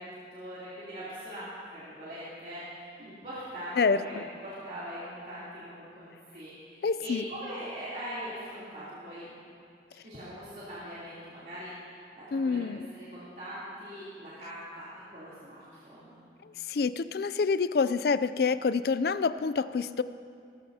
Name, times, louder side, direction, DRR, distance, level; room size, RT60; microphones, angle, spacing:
voice 1, 0.0-9.3 10.0-12.6 12.9-14.9 15.1-16.2, equal, 45° right, -11 dB, 3.2 m, -42 dB
voice 2, 3.8-4.2 6.8-7.3 12.3-12.9 16.7-20.0, left 5 dB, 55° left, 14 dB, 0.4 m, -27 dB
18.5 x 15.0 x 2.8 m, 2.3 s
head